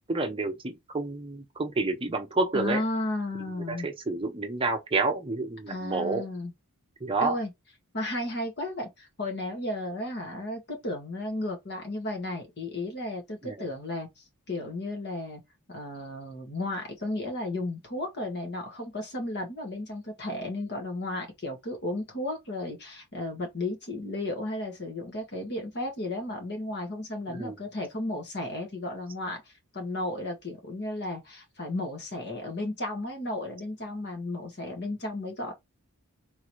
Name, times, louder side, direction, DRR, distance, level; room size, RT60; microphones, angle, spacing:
voice 1, 0.1-2.9 3.7-6.3 7.0-7.4 13.4-13.6 27.3-27.6, right 3 dB, 25° right, 0.7 m, -29 dB
voice 2, 2.5-3.9 5.7-6.5 7.2-7.5 7.9-15.4 15.7-35.5, left 1 dB, 50° left, 2.0 m, -34 dB
4.0 x 3.7 x 3.1 m
head